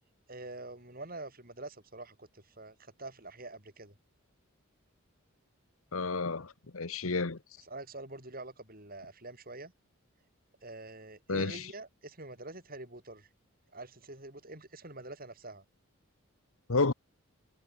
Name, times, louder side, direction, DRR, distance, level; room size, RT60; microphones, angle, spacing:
voice 1, 0.3-4.0 7.6-9.7 10.6-13.3 13.7-15.6, right 2 dB, 40° right, 7.9 m, -46 dB
voice 2, 5.9-7.4 11.3-11.7 16.7-16.9, left 3 dB, 75° left, 1.2 m, -31 dB
head